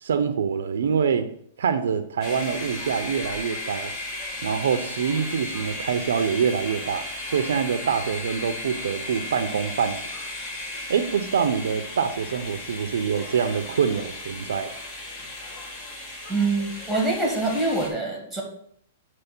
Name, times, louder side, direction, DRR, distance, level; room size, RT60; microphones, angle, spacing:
voice 1, 0.0-1.3 1.6-3.9 4.4-7.0 7.3-10.0 10.9-14.7, right 7 dB, 85° right, 10 dB, 0.7 m, -25 dB
sound 1, 2.2-17.9, left 2 dB, 25° left, 2.1 m, -35 dB
voice 2, 16.3-18.4, right 3 dB, 5° right, -1 dB, 2.4 m, -25 dB
8.0 x 3.1 x 6.1 m, 0.65 s
hypercardioid pair, 145°, 0 cm